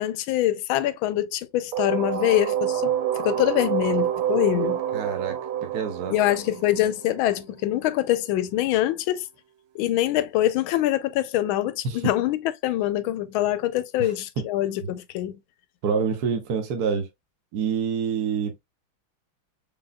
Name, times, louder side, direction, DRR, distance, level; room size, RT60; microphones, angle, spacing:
voice 1, 0.0-4.8 6.1-9.3 9.7-15.4, left 13 dB, 85° left, 1.4 m, -24 dB
sound 1, 1.7-7.4, right 10 dB, 80° right, 1.5 m, -27 dB
voice 2, 4.9-6.2 11.8-12.1 14.0-14.4 15.8-17.1 17.5-18.6, right 6 dB, 55° right, 1.3 m, -27 dB
5.2 x 3.8 x 2.2 m
omnidirectional pair, 2.2 m